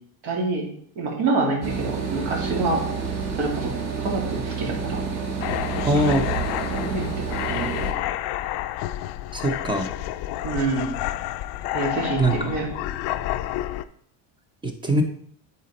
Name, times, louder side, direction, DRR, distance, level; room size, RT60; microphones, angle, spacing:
voice 1, 0.2-0.7 1.0-2.8 3.4-3.7 4.0-5.0 6.6-7.7 8.0-8.1 10.4-10.9 11.7-12.7, right 3 dB, 65° right, -1 dB, 2.4 m, -27 dB
sound 1, 1.6-7.9, right 5 dB, 35° right, 1.2 m, -29 dB
sound 2, 5.4-13.8, left 14 dB, 60° left, 0.5 m, -30 dB
voice 2, 5.8-6.2 9.3-9.9 12.2-12.3 14.6-15.0, right 1 dB, 10° right, 5 dB, 0.6 m, -21 dB
9.3 x 4.3 x 4.1 m, 0.65 s
cardioid pair, 155°, 45 cm